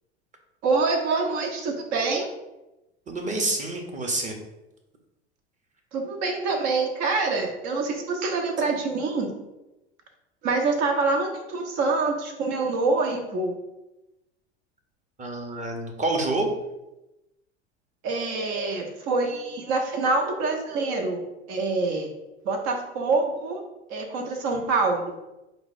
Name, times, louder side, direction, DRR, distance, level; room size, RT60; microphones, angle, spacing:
voice 1, 0.6-2.3 5.9-9.3 10.4-13.5 18.0-21.2 21.5-22.1 22.4-23.6 23.9-25.2, right 3 dB, 50° right, 4 dB, 1.1 m, -25 dB
voice 2, 3.1-4.4 15.2-16.5, right 2 dB, 20° right, 2 dB, 1.0 m, -27 dB
5.2 x 2.3 x 4.2 m, 0.96 s
hypercardioid pair, 80°, 35 cm